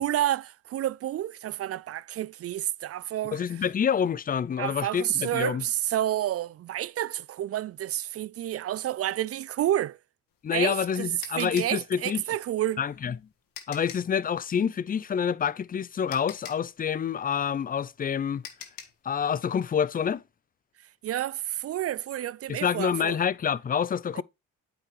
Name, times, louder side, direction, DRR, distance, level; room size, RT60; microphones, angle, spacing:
voice 1, 0.0-3.4 4.6-10.0 10.5-11.1 11.4-12.8 21.0-23.2 24.2-24.3, right 12 dB, 45° right, 0.4 m, -30 dB
voice 2, 3.3-5.6 10.4-12.2 12.8-13.2 13.7-18.4 19.0-20.2 22.5-24.2, left 7 dB, 25° left, 0.4 m, -27 dB
sound 1, 10.3-14.2 15.6-15.7 16.1-19.1, left 9 dB, 70° left, 1.6 m, -45 dB
8.6 x 4.9 x 3.2 m
hypercardioid pair, 55°, 35 cm